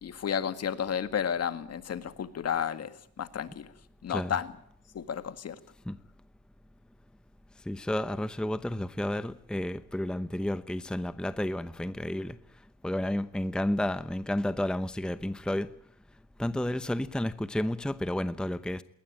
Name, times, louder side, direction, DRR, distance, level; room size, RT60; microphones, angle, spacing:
voice 1, 0.0-3.7 4.0-4.5 4.9-5.6, left 8 dB, 55° left, 2.0 m, -32 dB
voice 2, 7.7-12.4 12.8-15.7 16.4-18.8, left 1 dB, 5° left, 0.8 m, -31 dB
20.5 x 19.0 x 8.9 m
cardioid pair, 90°, 30 cm